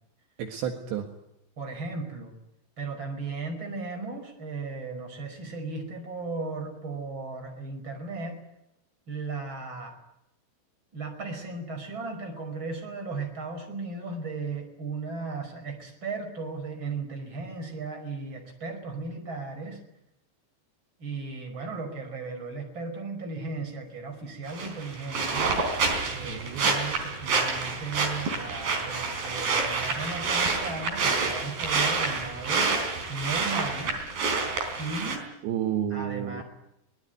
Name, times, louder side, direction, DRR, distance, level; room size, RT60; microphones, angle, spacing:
voice 1, 0.4-1.1 26.2-26.6 35.4-36.4, right 10 dB, 70° right, 4 dB, 3.7 m, -31 dB
voice 2, 1.6-2.3 2.8-8.4 9.1-10.0 10.9-19.8 21.0-25.5 26.1-32.7 33.1-34.1 34.8-35.3 35.9-36.4, right 3 dB, 25° right, 4 dB, 5.7 m, -36 dB
sound 1, 24.5-35.2, right 4 dB, 50° right, 5.5 m, -28 dB
24.0 x 20.0 x 9.4 m, 0.83 s
omnidirectional pair, 5.5 m